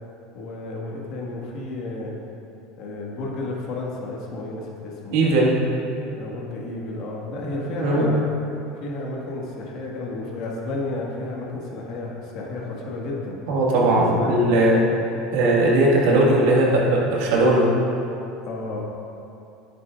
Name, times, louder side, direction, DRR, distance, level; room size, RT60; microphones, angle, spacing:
voice 1, 0.3-2.2 2.8-5.2 6.2-8.2 8.7-13.4 14.0-14.5 16.1-16.2 18.4-18.8, left 2 dB, 60° left, -2 dB, 1.7 m, -32 dB
voice 2, 5.1-5.6 7.8-8.1 13.5-14.9 15.3-17.7, right 1 dB, 75° right, -4 dB, 1.8 m, -18 dB
10.5 x 8.5 x 2.5 m, 2.8 s
supercardioid pair, 105°, 0 cm